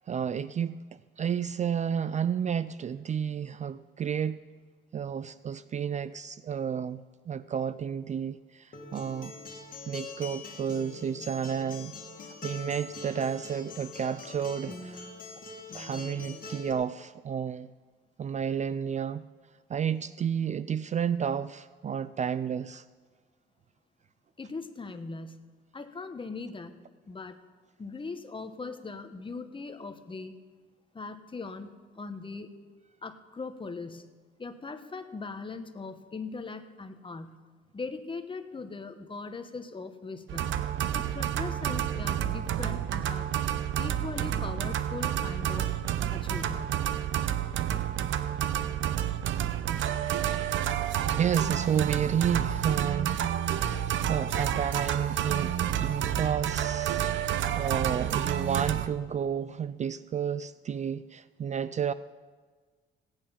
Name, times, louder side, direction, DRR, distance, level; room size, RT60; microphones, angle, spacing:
voice 1, 0.1-4.4 4.9-9.3 9.9-15.1 15.7-17.7 18.2-19.3 19.7-22.8 51.2-53.3 53.6-57.1 57.6-61.9, right 8 dB, 35° right, 16 dB, 0.4 m, -31 dB
Acoustic guitar, 8.7-16.7, left 3 dB, 45° left, 2.0 m, -43 dB
voice 2, 24.4-25.4 25.7-27.4 27.8-30.3 30.9-32.5 33.0-34.1 34.4-37.4 37.7-40.6 40.9-43.3 43.8-45.7 46.1-46.7, left 4 dB, 25° left, 9 dB, 1.1 m, -40 dB
sound 1, 40.3-58.9, right 10 dB, 75° right, 0.7 m, -29 dB
16.5 x 9.0 x 5.6 m, 1.4 s
cardioid pair, 90°, 20 cm